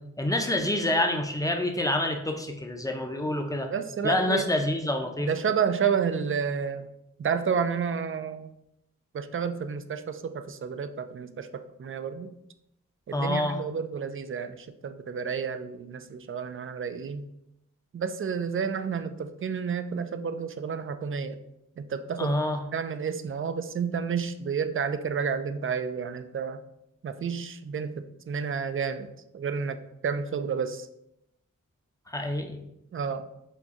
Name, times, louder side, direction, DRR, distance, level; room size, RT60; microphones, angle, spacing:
voice 1, 0.2-3.7 4.0-5.3 13.1-13.6 22.2-22.6 32.1-32.6, left 1 dB, 10° left, 4 dB, 0.6 m, -27 dB
voice 2, 3.7-4.5 5.2-6.9 7.2-8.5 9.1-12.3 13.1-17.3 17.9-21.4 21.8-22.3 22.7-26.6 27.0-29.1 29.3-30.9 32.9-33.3, right 6 dB, 40° right, 10 dB, 0.4 m, -30 dB
6.3 x 2.3 x 2.8 m, 0.80 s
cardioid pair, 55°, 32 cm